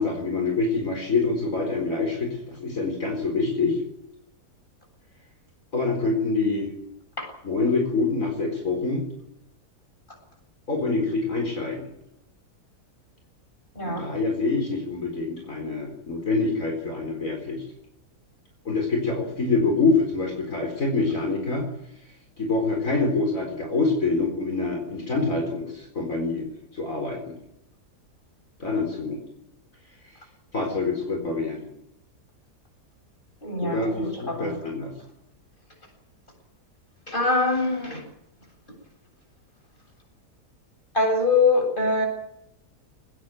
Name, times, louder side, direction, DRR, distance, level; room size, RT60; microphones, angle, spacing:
voice 1, 0.0-3.8 5.7-6.7 7.4-9.0 10.7-11.9 13.8-17.6 18.6-21.7 22.4-26.5 26.7-27.4 28.6-29.2 30.0-30.1 30.5-31.7 33.6-34.9, left 3 dB, 55° left, 2 dB, 4.7 m, -26 dB
voice 2, 13.7-14.1 33.4-34.6 37.1-38.0 40.9-42.1, left 3 dB, 30° left, 3 dB, 8.2 m, -23 dB
20.5 x 20.0 x 9.3 m, 0.79 s
omnidirectional pair, 1.7 m